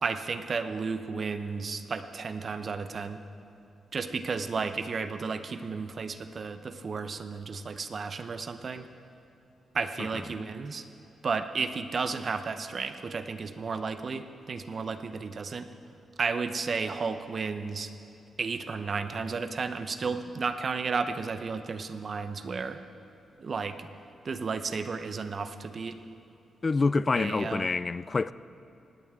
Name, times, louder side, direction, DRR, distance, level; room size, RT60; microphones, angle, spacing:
voice 1, 0.0-3.2 3.9-8.9 9.7-10.9 11.2-15.7 16.2-17.9 18.4-22.8 23.4-23.9 24.2-26.0 27.2-27.7, right 4 dB, 45° right, 0.7 m, -33 dB
voice 2, 26.6-28.3, left 3 dB, 30° left, 0.3 m, -27 dB
18.0 x 18.0 x 3.7 m
cardioid pair, 125°, 0 cm